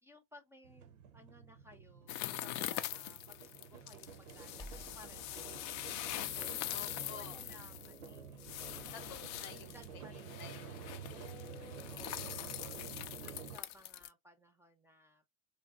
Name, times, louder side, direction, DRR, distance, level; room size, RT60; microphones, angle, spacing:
voice 1, 0.0-8.9 9.5-11.0 11.9-15.3, equal, 5° right, 0.4 m, -61 dB
sound 1, 0.6-13.6, right 7 dB, 85° right, 0.6 m, -50 dB
sound 2, 2.1-14.1, left 13 dB, 60° left, 0.5 m, -43 dB
sound 3, 4.6-9.4, left 1 dB, 10° left, 0.8 m, -58 dB
voice 2, 6.7-7.4 8.9-12.7, left 7 dB, 80° left, 0.8 m, -53 dB
3.1 x 2.6 x 2.4 m
hypercardioid pair, 75°, 41 cm